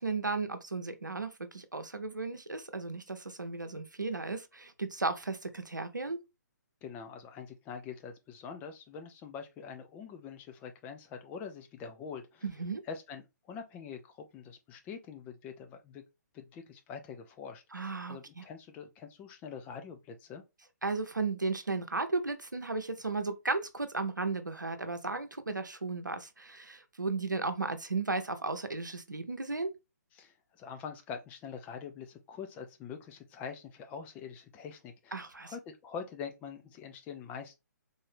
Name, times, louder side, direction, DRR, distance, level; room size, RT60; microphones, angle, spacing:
voice 1, 0.0-6.2 12.4-12.8 17.7-18.4 20.8-29.7 35.1-35.5, right 3 dB, 85° right, 0.8 m, -35 dB
voice 2, 6.8-12.4 12.9-16.0 16.3-20.4 30.1-37.6, left 6 dB, 15° left, 0.5 m, -44 dB
3.9 x 2.7 x 3.3 m
figure-of-eight pair, 135°, 10 cm